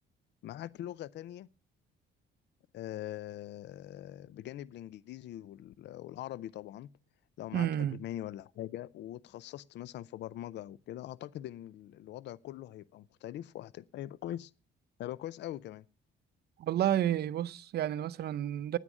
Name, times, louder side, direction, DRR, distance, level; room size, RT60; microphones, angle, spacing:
voice 1, 0.4-1.5 2.7-6.9 7.4-14.5 15.0-15.9, left 13 dB, 65° left, 0.5 m, -42 dB
voice 2, 7.5-8.0 16.6-18.8, right 11 dB, 55° right, 0.6 m, -30 dB
9.8 x 9.1 x 7.2 m
cardioid pair, 120°, 20 cm